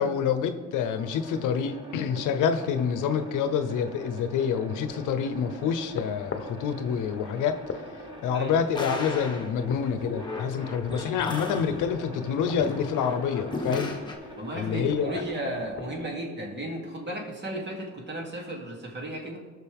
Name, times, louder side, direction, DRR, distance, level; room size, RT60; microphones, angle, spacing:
voice 1, 0.0-7.6 8.2-13.9 14.5-15.1, left 7 dB, 90° left, 9 dB, 0.8 m, -27 dB
sound 1, 0.7-15.7, right 1 dB, 15° right, 1.7 m, -44 dB
sound 2, 4.9-16.1, left 5 dB, 40° left, 1.0 m, -45 dB
sound 3, 8.7-14.1, left 2 dB, 15° left, 1.6 m, -36 dB
voice 2, 14.4-19.4, right 1 dB, 35° right, -1 dB, 2.7 m, -34 dB
18.0 x 6.3 x 3.6 m, 1.4 s
cardioid pair, 90°, 30 cm